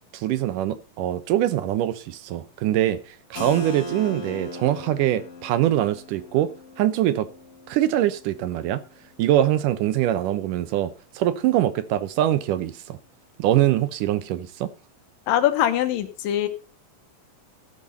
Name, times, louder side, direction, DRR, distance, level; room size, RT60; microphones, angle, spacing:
voice 1, 0.1-7.3 7.7-8.8 9.2-13.0 13.4-14.7, right 12 dB, 75° right, 2.4 m, -23 dB
Keyboard (musical), 3.3-8.9, equal, 30° left, 1.5 m, -39 dB
voice 2, 15.3-16.5, left 12 dB, 90° left, 2.9 m, -22 dB
14.5 x 6.6 x 5.4 m
omnidirectional pair, 3.8 m